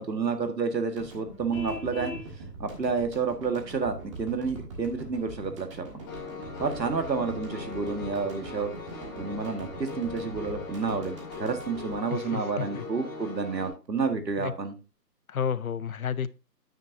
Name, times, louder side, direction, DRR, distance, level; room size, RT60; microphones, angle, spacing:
voice 1, 0.0-2.1 2.6-6.0 6.6-8.7 9.2-14.8, right 5 dB, 80° right, 1.9 m, -30 dB
sound 1, 1.0-13.2, right 2 dB, 20° right, 1.5 m, -44 dB
Vehicle horn car horn honking, 1.5-2.3, left 4 dB, 90° left, 1.6 m, -38 dB
Piano, 6.1-13.7, left 5 dB, 15° left, 1.4 m, -40 dB
voice 2, 12.1-12.8 14.4-14.5 15.3-16.3, left 7 dB, 60° left, 0.5 m, -31 dB
9.2 x 7.6 x 2.7 m
figure-of-eight pair, 160°, 50 cm